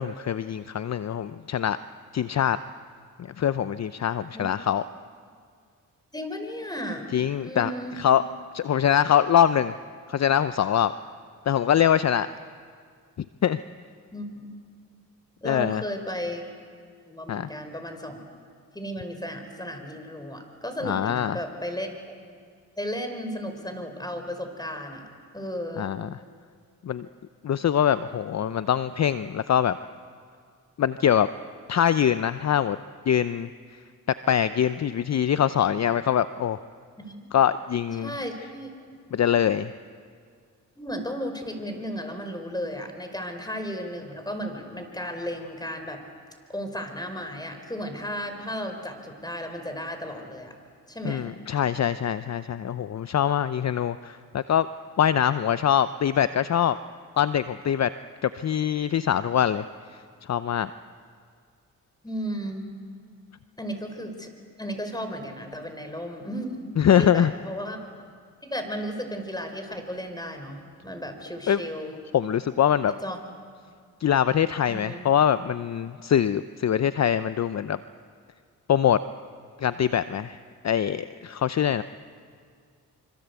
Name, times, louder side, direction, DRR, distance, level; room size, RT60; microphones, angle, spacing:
voice 1, 0.0-1.8 2.1-2.6 3.4-4.8 7.1-8.2 8.5-9.7 10.1-10.9 11.5-12.3 13.4-13.6 15.4-15.8 17.3-17.5 20.8-21.4 25.8-26.1 26.8-27.1 27.4-29.8 30.8-31.3 31.7-32.8 33.1-33.5 34.3-36.6 37.3-38.1 39.1-39.7 51.0-54.7 55.0-56.8 57.2-57.9 58.2-59.6 60.3-60.7 66.8-67.3 71.5-71.6 72.1-72.9 74.0-77.8 78.7-79.0 79.6-80.4 80.6-81.8, left 9 dB, 50° left, 13 dB, 0.7 m, -23 dB
voice 2, 6.1-7.1 7.4-8.0 14.1-14.5 15.4-16.4 17.1-18.2 18.7-22.1 22.8-25.0 25.3-25.9 37.0-37.3 38.0-38.7 40.8-46.0 46.5-50.5 50.9-51.3 62.0-62.7 63.6-64.3 64.6-67.9 68.4-72.0 72.9-73.2 74.7-75.0, equal, 10° left, 6 dB, 5.0 m, -34 dB
25.5 x 25.5 x 8.3 m, 2.1 s
cardioid pair, 60°, 35 cm